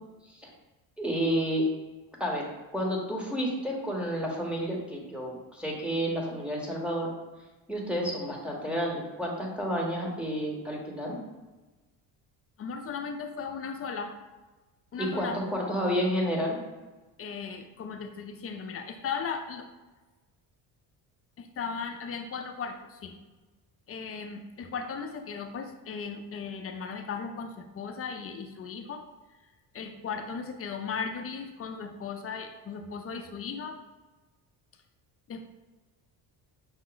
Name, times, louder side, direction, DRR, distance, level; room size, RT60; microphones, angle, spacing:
voice 1, 1.0-1.7 2.2-7.1 7.7-11.2 15.0-16.6, equal, 5° right, -2 dB, 0.8 m, -30 dB
voice 2, 12.6-14.1 14.9-15.4 17.2-19.7 21.4-23.1 23.9-29.0 29.7-33.8 35.3-35.4, left 5 dB, 35° left, 6 dB, 0.4 m, -37 dB
5.7 x 2.0 x 3.8 m, 1.2 s
cardioid pair, 110°, 43 cm